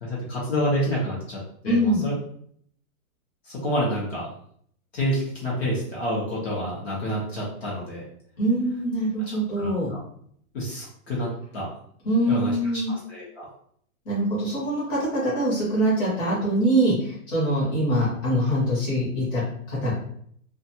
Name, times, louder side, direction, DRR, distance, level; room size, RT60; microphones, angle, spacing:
voice 1, 0.0-2.1 3.4-4.3 4.9-8.0 9.3-10.0 10.5-11.7 12.3-13.5, equal, 45° left, -6 dB, 0.9 m, -28 dB
voice 2, 1.6-2.0 8.4-9.9 12.0-12.9 14.0-19.4 19.7-19.9, right 1 dB, 25° left, -7 dB, 0.9 m, -23 dB
2.4 x 2.4 x 2.7 m, 0.64 s
hypercardioid pair, 165°, 43 cm